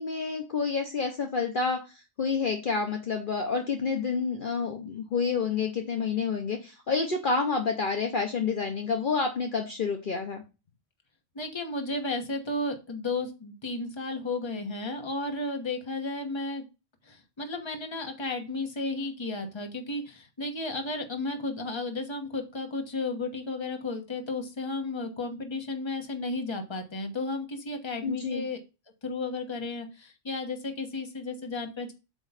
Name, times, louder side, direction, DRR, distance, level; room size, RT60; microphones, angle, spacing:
voice 1, 0.0-10.4 28.0-28.5, left 5 dB, 50° left, 3 dB, 1.0 m, -29 dB
voice 2, 11.3-16.6 17.0-28.6 29.0-31.9, left 2 dB, 25° left, 4 dB, 1.1 m, -33 dB
8.2 x 3.1 x 5.6 m, 0.28 s
omnidirectional pair, 1.3 m